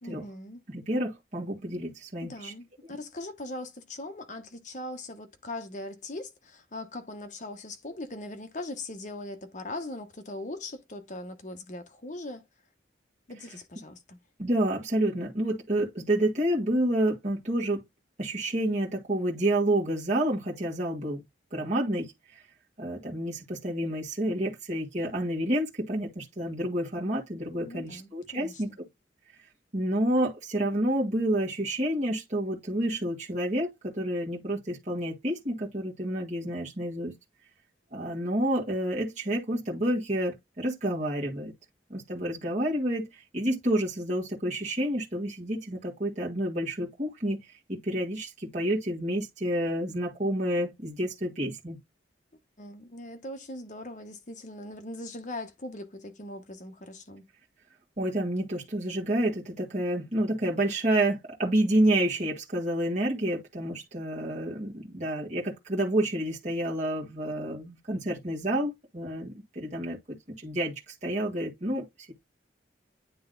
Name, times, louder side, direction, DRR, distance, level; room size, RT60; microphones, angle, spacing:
voice 1, 0.0-0.6 2.2-12.4 13.3-14.2 27.5-28.8 52.6-57.2, left 2 dB, 40° left, 1.1 m, -40 dB
voice 2, 0.7-2.5 14.4-17.8 18.2-21.2 21.5-22.4 22.8-28.7 29.7-37.1 37.9-41.5 41.9-51.8 58.0-72.1, right 1 dB, 40° right, 1.9 m, -29 dB
9.4 x 3.4 x 3.9 m
head